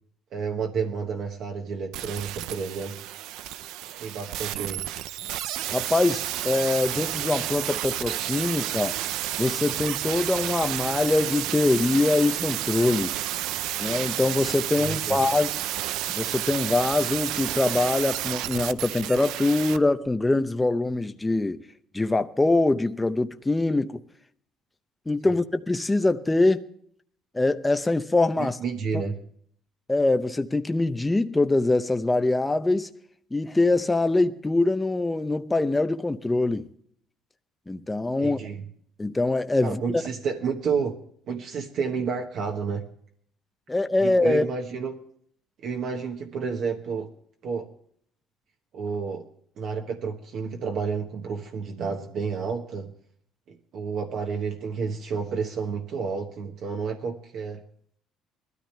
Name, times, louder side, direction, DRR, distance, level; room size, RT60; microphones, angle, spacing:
voice 1, 0.3-3.0 4.0-4.9 14.7-15.2 25.2-25.3 28.4-29.2 38.2-38.6 39.6-41.0 41.3-42.9 44.0-45.0 45.6-47.1 47.4-47.7 48.7-49.2 49.6-52.9 53.5-57.6, right 5 dB, 55° right, 1.3 m, -30 dB
sound 1, 1.9-19.8 20.1-20.2, right 13 dB, 80° right, 0.5 m, -31 dB
voice 2, 5.7-9.0 9.4-13.2 13.8-15.6 16.1-21.6 21.9-24.0 25.1-26.6 27.3-28.6 28.9-29.0 29.9-32.9 33.3-36.7 37.7-38.4 39.0-40.0 43.7-44.4, left 2 dB, 10° left, 0.6 m, -23 dB
20.5 x 13.0 x 3.3 m
cardioid pair, 140°, 0 cm